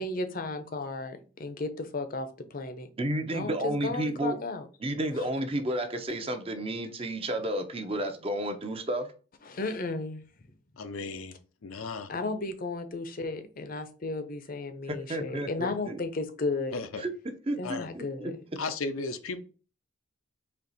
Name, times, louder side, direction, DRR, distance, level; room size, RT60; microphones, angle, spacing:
voice 1, 0.0-2.9 3.3-4.7 5.1-5.3 9.4-10.2 12.1-16.8 17.6-18.3, left 3 dB, 45° left, 0.6 m, -34 dB
voice 2, 3.0-4.4 4.8-9.1 14.9-16.0 17.0-17.1 17.5-18.3, right 1 dB, 30° right, 0.6 m, -31 dB
voice 3, 10.8-11.3 11.6-12.1 16.7-17.0 17.6-17.9 18.6-19.4, left 4 dB, 85° left, 0.6 m, -35 dB
4.4 x 2.9 x 4.0 m
head